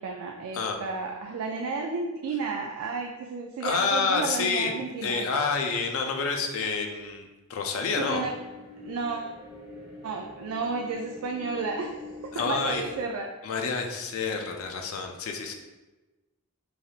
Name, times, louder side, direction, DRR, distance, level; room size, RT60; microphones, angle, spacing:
voice 1, 0.0-5.2 8.0-8.3 8.8-9.3 10.0-11.9 12.2-13.3, right 4 dB, 75° right, 1 dB, 0.3 m, -32 dB
voice 2, 3.6-4.7 5.0-8.2 12.3-12.8 13.4-15.5, left 4 dB, 70° left, 3 dB, 0.4 m, -28 dB
sound 1, 7.8-13.1, left 2 dB, 5° right, 0.8 m, -44 dB
3.1 x 2.4 x 2.7 m, 1.1 s
head